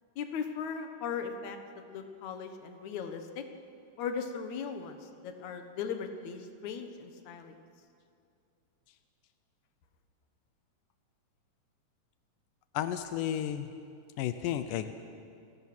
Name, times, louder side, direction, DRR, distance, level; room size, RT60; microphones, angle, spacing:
voice 1, 0.2-1.6 1.9-3.4 4.0-5.0 5.2-7.5, left 6 dB, 65° left, 6 dB, 2.6 m, -38 dB
voice 2, 12.7-13.7 14.2-14.9, left 11 dB, 90° left, 10 dB, 2.4 m, -32 dB
28.5 x 17.5 x 6.2 m, 2.4 s
omnidirectional pair, 3.6 m